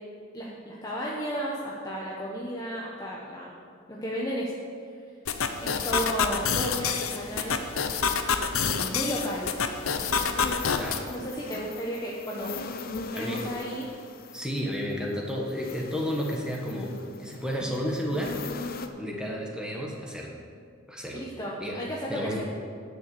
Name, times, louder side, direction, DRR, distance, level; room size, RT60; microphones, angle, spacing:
voice 1, 0.3-3.6 3.9-4.5 5.6-7.6 8.5-9.5 11.1-12.5 13.0-13.9 21.1-22.4, equal, 20° left, -5 dB, 1.1 m, -33 dB
sound 1, 5.3-11.0, left 6 dB, 90° left, 0.8 m, -28 dB
sound 2, 9.0-18.9, left 3 dB, 45° left, 0.7 m, -40 dB
voice 2, 13.1-13.5 14.3-16.9 17.2-18.3 19.0-20.4 20.9-21.2 21.6-21.8 22.1-22.4, equal, 5° right, -2 dB, 1.5 m, -32 dB
10.0 x 6.7 x 7.8 m, 2.1 s
head